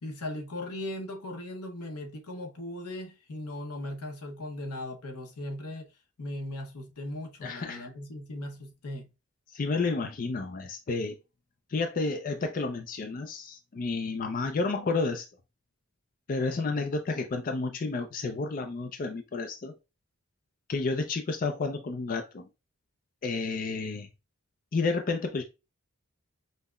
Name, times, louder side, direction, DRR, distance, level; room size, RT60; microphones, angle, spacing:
voice 1, 0.0-5.9 6.2-9.1, left 1 dB, 90° left, 0.8 m, -38 dB
voice 2, 7.4-7.9 9.5-11.2 11.7-15.3 16.3-19.7 20.7-22.5 23.2-24.1 24.7-25.4, left 3 dB, 40° left, 0.4 m, -31 dB
5.4 x 2.0 x 2.3 m
head